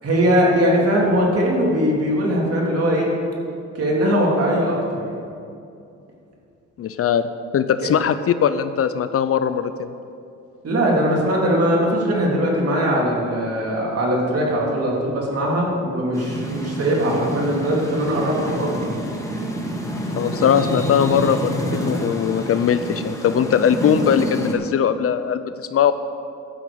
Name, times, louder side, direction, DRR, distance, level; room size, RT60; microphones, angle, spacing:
voice 1, 0.0-3.1 3.7-5.0 10.6-18.9, equal, 50° right, -3 dB, 3.3 m, -20 dB
voice 2, 6.8-7.3 7.5-9.9 20.1-25.9, left 8 dB, 50° left, 11 dB, 0.6 m, -20 dB
sound 1, 16.1-24.5, equal, 10° left, 1.9 m, -28 dB
12.5 x 6.1 x 8.6 m, 2.6 s
cardioid pair, 90°, 30 cm